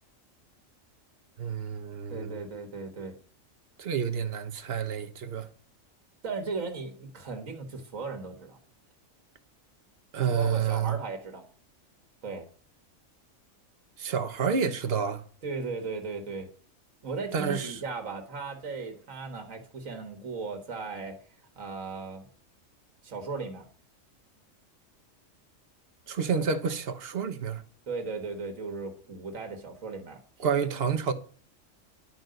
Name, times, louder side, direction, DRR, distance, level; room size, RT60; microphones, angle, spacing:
voice 1, 1.4-2.4 3.8-5.5 10.1-11.0 14.0-15.2 17.3-17.8 26.1-27.6 30.4-31.1, right 6 dB, 50° right, 1.2 m, -29 dB
voice 2, 2.1-3.2 6.2-8.6 10.4-11.4 12.2-12.5 15.4-16.5 17.0-21.2 21.6-22.2 23.0-23.6 26.3-26.4 27.9-30.2, right 4 dB, 80° right, 2.0 m, -36 dB
11.0 x 5.4 x 7.8 m
omnidirectional pair, 1.3 m